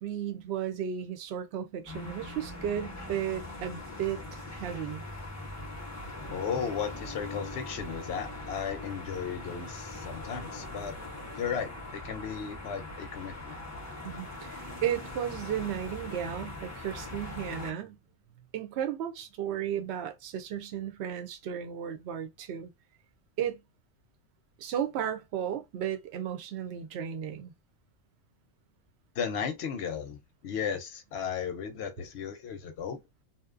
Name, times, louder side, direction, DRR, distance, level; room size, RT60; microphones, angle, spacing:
voice 1, 0.0-4.2 4.6-5.0 14.0-18.0 18.5-22.7 23.4-23.6 24.6-27.5, right 9 dB, 65° right, 0.8 m, -34 dB
sound 1, 1.9-17.7, left 2 dB, 25° left, 0.3 m, -41 dB
voice 2, 6.3-10.9 11.4-13.6 29.2-33.0, left 7 dB, 65° left, 0.7 m, -35 dB
2.7 x 2.1 x 2.4 m
omnidirectional pair, 1.3 m